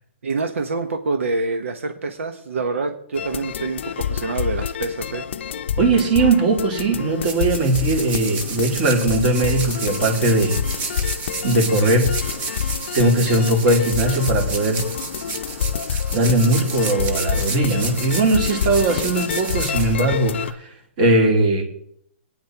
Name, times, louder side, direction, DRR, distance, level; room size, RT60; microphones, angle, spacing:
voice 1, 0.2-5.3, right 3 dB, 90° right, 6 dB, 1.1 m, -26 dB
sound 1, 3.1-20.5, left 8 dB, 65° left, 0.5 m, -28 dB
voice 2, 5.8-10.6 11.4-12.1 12.9-14.8 16.1-20.7 21.0-21.6, right 2 dB, 40° right, 1 dB, 2.9 m, -19 dB
sound 2, 6.9-20.5, right 4 dB, 20° right, 1.1 m, -32 dB
22.0 x 9.3 x 3.0 m, 0.66 s
hypercardioid pair, 155°, 7 cm